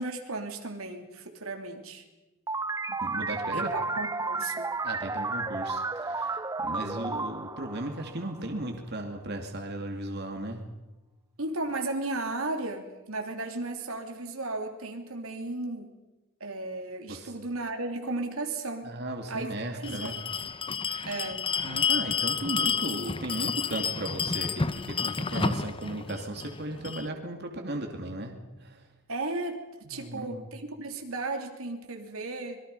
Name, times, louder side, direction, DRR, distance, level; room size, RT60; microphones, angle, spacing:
voice 1, 0.0-2.0 3.5-4.7 6.7-7.2 11.4-15.9 16.4-19.0 19.3-20.1 20.4-20.5 21.0-21.5 29.1-29.6 29.9-32.6, right 2 dB, 80° right, 4 dB, 3.1 m, -35 dB
sound 1, 2.5-8.7, right 3 dB, 15° right, 0.6 m, -32 dB
voice 2, 2.9-3.7 4.8-10.6 17.1-17.3 18.8-20.2 20.9-21.1 21.6-28.3 28.6-28.9 29.8-30.4, right 1 dB, 50° right, 3 dB, 2.6 m, -36 dB
Bell, 19.8-27.1, left 6 dB, 25° left, 0.7 m, -30 dB
26.0 x 22.5 x 5.6 m, 1.1 s
head